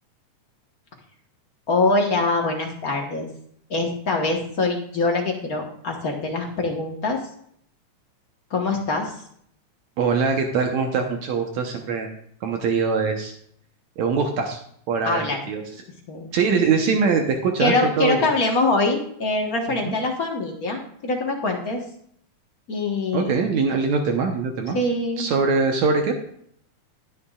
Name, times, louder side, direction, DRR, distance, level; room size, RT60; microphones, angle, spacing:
voice 1, 1.7-3.3 3.7-7.2 8.5-9.1 15.0-15.4 16.1-16.3 17.6-21.8 22.7-23.3 24.7-25.3, left 2 dB, 50° left, 1 dB, 1.1 m, -24 dB
voice 2, 10.0-12.1 12.4-13.3 14.0-14.6 14.9-15.6 16.3-18.3 19.8-19.9 23.1-24.8 25.2-26.1, right 5 dB, 70° right, 3 dB, 2.2 m, -22 dB
20.5 x 7.0 x 2.4 m, 0.65 s
omnidirectional pair, 3.5 m